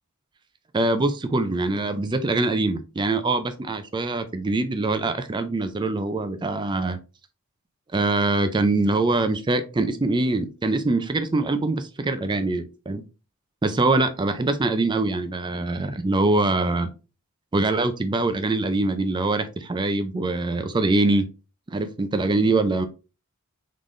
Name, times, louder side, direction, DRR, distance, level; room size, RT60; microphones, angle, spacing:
voice 1, 0.7-7.0 7.9-13.0 13.6-16.9 17.5-21.3 21.7-22.9, right 2 dB, 20° right, 9 dB, 0.4 m, -23 dB
3.8 x 3.6 x 3.2 m, 0.32 s
head